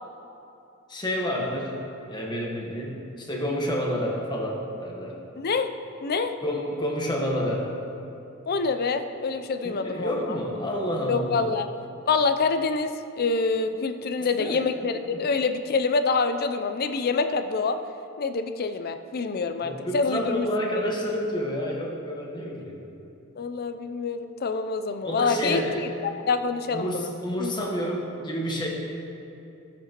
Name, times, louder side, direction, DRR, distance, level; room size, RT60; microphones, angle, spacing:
voice 1, 0.9-1.8 2.1-5.2 6.4-7.7 9.6-11.5 14.4-15.2 19.6-22.8 25.0-25.9 26.7-28.7, equal, 20° left, -1 dB, 1.3 m, -29 dB
voice 2, 5.4-5.7 6.0-6.3 8.5-10.4 11.1-11.7 12.1-17.8 18.2-20.5 23.4-25.6 26.3-27.1 27.4-27.5, left 4 dB, 45° left, 9 dB, 0.5 m, -26 dB
15.0 x 7.3 x 3.0 m, 2.8 s
head